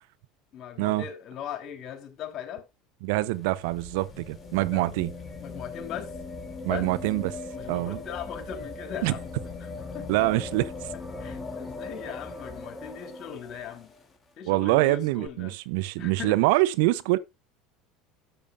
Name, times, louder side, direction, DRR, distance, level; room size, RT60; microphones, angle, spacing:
voice 1, 0.5-2.6 4.4-4.9 5.4-6.1 6.6-6.9 7.5-9.3 9.6-10.1 11.2-13.9 14.4-15.6 16.0-16.4, left 9 dB, 45° left, 3.9 m, -39 dB
voice 2, 3.0-5.1 6.6-7.4 7.7-8.0 9.0-9.1 10.1-10.7 14.5-17.2, right 19 dB, 65° right, 0.6 m, -25 dB
sound 1, 3.1-14.1 15.3-15.4, left 3 dB, 20° left, 2.9 m, -40 dB
13.5 x 8.3 x 2.5 m
hypercardioid pair, 75°, 0 cm